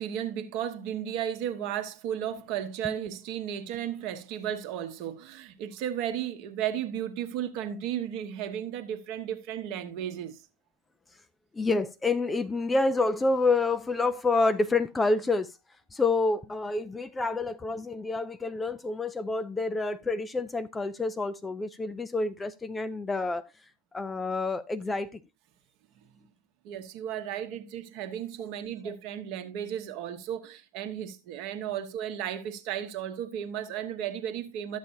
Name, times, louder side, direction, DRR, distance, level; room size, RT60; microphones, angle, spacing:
voice 1, 0.0-10.4 26.6-34.8, right 10 dB, 45° right, 1.0 m, -34 dB
voice 2, 11.5-15.5 15.9-23.4 23.9-25.1 28.8-28.9, left 3 dB, 10° left, 0.4 m, -28 dB
12.0 x 7.3 x 2.7 m
figure-of-eight pair, 90°, 0 cm